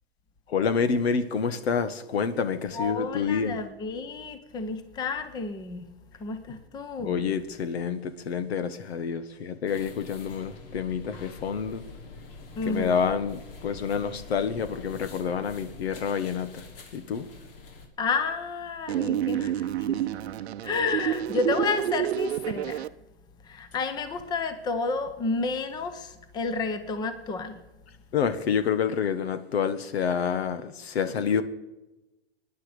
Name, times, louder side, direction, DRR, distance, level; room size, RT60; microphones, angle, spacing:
voice 1, 0.5-3.6 7.0-11.8 12.6-16.6 16.9-17.3 19.9-20.0 28.1-31.4, left 6 dB, 80° left, 1.6 m, -28 dB
voice 2, 2.7-5.9 6.2-7.3 12.6-13.1 18.0-20.1 20.6-22.9 23.4-27.6, left 4 dB, 15° left, 0.8 m, -31 dB
sound 1, 9.7-17.9, left 3 dB, 60° left, 3.1 m, -45 dB
sound 2, 18.9-22.9, right 11 dB, 85° right, 0.7 m, -29 dB
21.5 x 10.5 x 5.1 m
hypercardioid pair, 155°, 31 cm